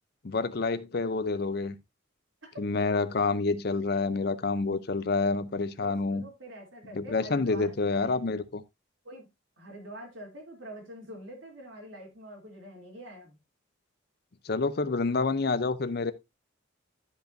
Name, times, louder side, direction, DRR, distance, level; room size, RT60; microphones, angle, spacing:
voice 1, 0.2-1.7 2.6-6.2 6.9-8.6 14.4-16.1, left 3 dB, 50° left, 0.6 m, -28 dB
voice 2, 5.8-8.2 9.0-9.3 9.6-13.4, right 1 dB, 75° right, 2.9 m, -45 dB
12.5 x 5.2 x 2.6 m
head